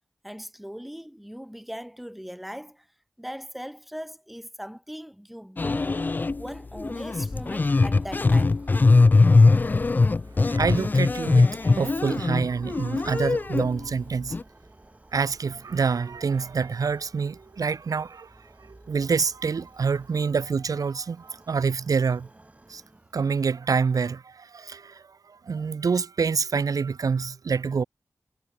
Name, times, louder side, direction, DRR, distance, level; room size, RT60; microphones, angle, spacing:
voice 1, 0.2-2.9 3.2-5.9 6.4-8.6, equal, ahead, 1.8 m, -39 dB
sound 1, 5.6-6.4 6.8-13.8 14.3-14.4, left 3 dB, 30° left, 0.3 m, -21 dB
sound 2, 6.6-23.6, right 2 dB, 20° right, 4.2 m, -54 dB
voice 2, 10.4-14.4 15.1-22.3 22.7-22.8 23.1-27.8, right 5 dB, 75° right, 1.1 m, -27 dB
wide cardioid pair, 95°, 6 cm